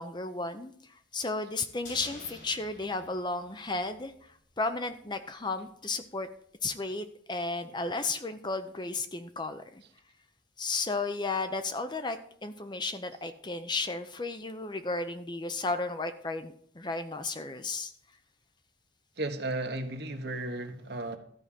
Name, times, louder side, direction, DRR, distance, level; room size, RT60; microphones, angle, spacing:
voice 1, 0.0-4.1 4.6-6.3 6.6-9.8 10.6-17.9, left 3 dB, 25° left, 9 dB, 0.7 m, -34 dB
sound 1, 1.8-4.2 4.5-4.6, left 2 dB, 90° left, 6.0 m, -49 dB
voice 2, 19.2-21.2, right 2 dB, 60° right, 5 dB, 1.4 m, -34 dB
13.5 x 4.8 x 7.4 m, 0.63 s
head